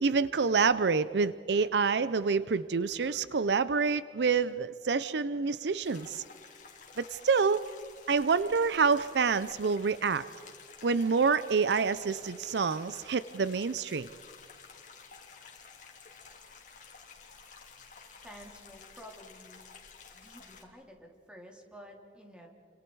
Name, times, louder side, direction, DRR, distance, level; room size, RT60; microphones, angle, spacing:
voice 1, 0.0-6.2 7.0-7.7 8.1-10.2 10.8-14.1, right 5 dB, 70° right, 15 dB, 0.5 m, -27 dB
sound 1, 5.8-20.6, left 5 dB, 50° left, 3.3 m, -52 dB
voice 2, 18.2-19.6 20.1-22.5, equal, 5° right, 1 dB, 3.2 m, -51 dB
29.5 x 26.0 x 4.7 m, 2.4 s
head